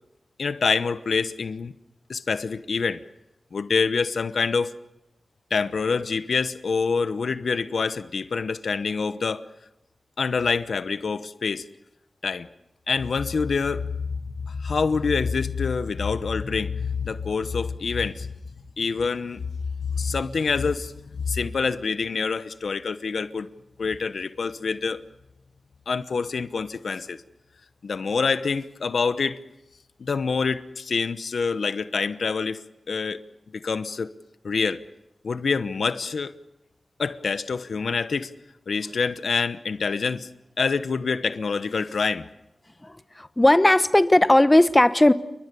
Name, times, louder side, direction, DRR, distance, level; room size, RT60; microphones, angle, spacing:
voice 1, 0.4-1.7 2.1-3.0 3.5-4.7 5.5-9.4 10.2-11.7 12.2-12.5 12.9-13.9 14.4-18.3 18.8-19.4 19.9-23.5 23.8-25.0 25.9-27.2 27.8-29.4 30.0-32.6 32.9-33.2 33.5-34.1 34.4-34.8 35.2-36.3 37.0-38.3 38.7-40.3 40.6-42.3, left 5 dB, 85° left, 12 dB, 1.0 m, -26 dB
voice 2, 42.8-45.1, left 1 dB, 20° left, 12 dB, 1.1 m, -17 dB
29.5 x 23.0 x 7.0 m, 0.91 s
wide cardioid pair, 75°, 0 cm